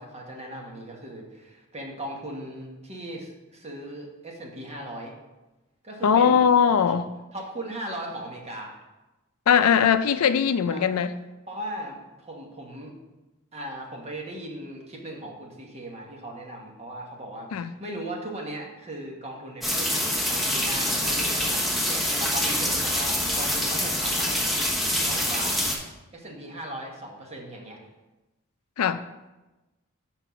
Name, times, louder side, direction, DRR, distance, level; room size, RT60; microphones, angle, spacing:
voice 1, 0.0-5.1 5.8-6.5 6.9-7.0 7.3-8.8 10.7-10.8 11.5-12.9 13.5-24.5 25.0-25.7 26.1-27.8, right 1 dB, 30° right, 1.2 m, -38 dB
voice 2, 6.0-7.0 9.5-11.1 17.5-17.7 28.8-29.0, left 7 dB, 85° left, 0.4 m, -20 dB
sound 1, 19.6-25.8, equal, ahead, 0.9 m, -25 dB
6.1 x 4.5 x 5.7 m
head